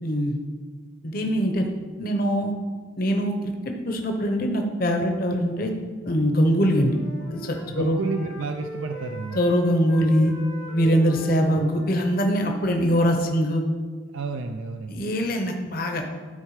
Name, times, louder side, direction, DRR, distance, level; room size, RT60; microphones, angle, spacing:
voice 1, 0.0-0.4 1.0-1.7 2.0-2.5 3.0-5.7 6.0-7.0 7.3-8.0 9.3-10.3 10.7-13.6 14.9-16.2, equal, 45° left, 3 dB, 0.8 m, -23 dB
Wind instrument woodwind instrument, 6.5-13.3, left 1 dB, 80° left, 2.1 m, -41 dB
voice 2, 7.7-9.4 11.6-11.7 14.1-15.1, right 4 dB, 80° right, 5 dB, 0.4 m, -31 dB
12.0 x 4.5 x 4.8 m, 1.5 s
head